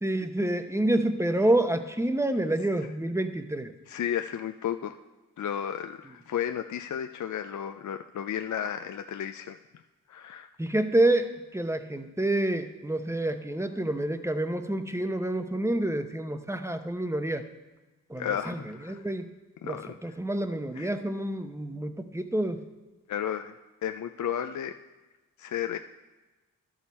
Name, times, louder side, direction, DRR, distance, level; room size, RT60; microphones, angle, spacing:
voice 1, 0.0-3.7 10.6-17.4 18.1-19.3 19.6-22.6, right 1 dB, 10° right, 8 dB, 0.8 m, -28 dB
voice 2, 3.9-5.0 5.4-9.6 10.1-10.5 18.2-19.1 19.6-20.1 20.7-20.9 23.1-23.6 23.8-24.7 25.4-25.8, left 9 dB, 55° left, 7 dB, 0.5 m, -33 dB
12.0 x 6.4 x 4.2 m, 1.2 s
supercardioid pair, 40°, 36 cm